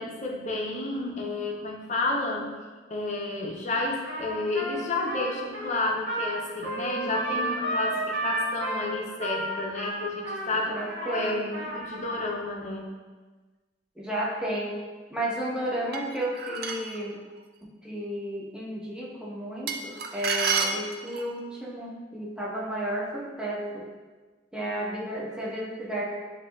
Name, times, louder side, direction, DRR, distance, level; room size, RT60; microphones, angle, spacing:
voice 1, 0.0-2.6 2.9-12.9, left 2 dB, 40° left, 0 dB, 0.6 m, -31 dB
Trumpet, 4.0-12.3, right 1 dB, 75° right, 1.2 m, -32 dB
voice 2, 7.0-7.7 10.7-11.7 14.0-14.8 15.1-17.2 17.6-23.8 24.5-26.1, right 1 dB, 5° right, -5 dB, 0.7 m, -33 dB
Eating soup, 15.9-17.0 19.7-21.3, right 5 dB, 55° right, 0.4 m, -29 dB
7.5 x 2.7 x 2.3 m, 1.3 s
head